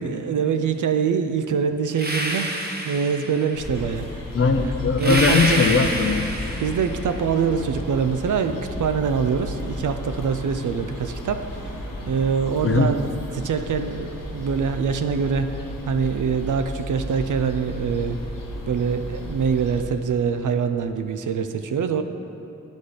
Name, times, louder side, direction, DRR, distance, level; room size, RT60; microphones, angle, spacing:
voice 1, 0.0-2.5 2.9-4.2 4.6-4.7 5.0-5.6 6.6-11.6 12.1-15.5 15.9-18.2 18.7-22.0, right 6 dB, 70° right, 8 dB, 0.5 m, -24 dB
sound 1, 1.9-3.6 5.0-7.1, right 1 dB, 30° right, 0.9 m, -27 dB
sound 2, 3.5-19.8, left 1 dB, 85° left, 1.0 m, -34 dB
voice 2, 4.3-6.3 12.6-12.9, left 4 dB, 45° left, 6 dB, 0.5 m, -19 dB
9.6 x 4.2 x 5.0 m, 2.8 s
cardioid pair, 60°, 32 cm